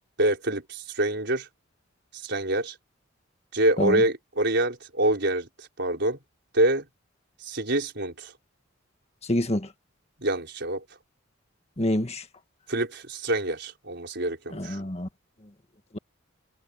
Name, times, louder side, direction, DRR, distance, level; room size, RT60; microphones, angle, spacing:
voice 1, 0.2-1.5 2.2-2.7 3.5-6.2 6.5-6.8 7.5-8.3 10.2-10.8 12.7-14.8, right 1 dB, 55° right, 4.9 m, -26 dB
voice 2, 9.3-9.7 11.8-12.2 14.5-15.1, left 1 dB, 30° left, 1.8 m, -26 dB
head